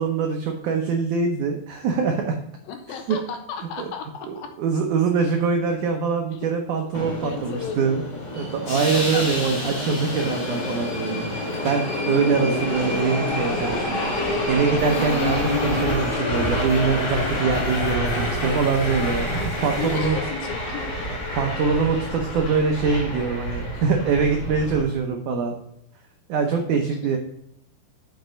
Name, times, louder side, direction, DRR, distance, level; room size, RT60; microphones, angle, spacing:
voice 1, 0.0-2.4 3.1-3.2 3.8-3.9 4.3-8.0 8.4-20.2 21.3-25.5 26.3-27.2, right 5 dB, 80° right, 3 dB, 1.7 m, -24 dB
voice 2, 2.7-4.5 5.2-5.3 6.3-6.4 7.2-7.9 8.7-9.5 19.7-20.9 23.7-23.8 26.7-27.2, left 6 dB, 75° left, 5 dB, 2.3 m, -35 dB
Subway metro underground, 6.9-24.8, left 1 dB, 35° left, 1.8 m, -27 dB
sound 1, 14.8-20.8, left 3 dB, 55° left, 1.9 m, -42 dB
7.7 x 6.0 x 5.1 m, 0.75 s
omnidirectional pair, 4.7 m